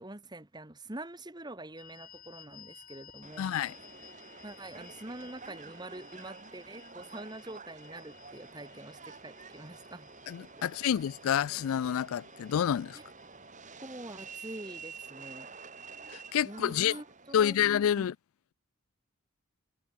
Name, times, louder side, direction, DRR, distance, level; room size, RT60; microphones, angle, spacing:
voice 1, 0.0-3.7 4.4-10.1 10.6-10.7 13.8-15.5 16.4-17.6 18.0-18.1, right 1 dB, 20° right, 1.5 m, -45 dB
sound 1, 1.8-16.3, left 8 dB, 40° left, 6.2 m, -58 dB
Subway metro underground, 3.2-17.8, right 5 dB, 35° right, 6.4 m, -49 dB
voice 2, 3.4-3.7 10.3-13.0 16.1-17.0 17.3-18.1, left 9 dB, 70° left, 0.3 m, -28 dB
head